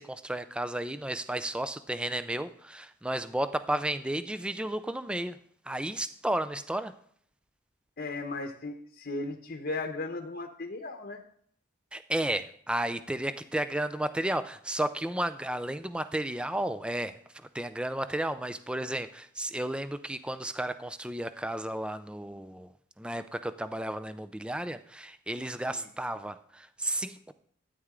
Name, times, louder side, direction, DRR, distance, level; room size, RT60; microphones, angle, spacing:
voice 1, 0.0-5.4 5.7-6.9 11.9-17.1 17.5-22.7 23.0-27.3, right 1 dB, 5° right, 12 dB, 0.4 m, -33 dB
voice 2, 8.0-11.2 25.6-25.9, left 2 dB, 50° left, 3 dB, 0.9 m, -36 dB
13.0 x 9.5 x 3.7 m, 0.62 s
head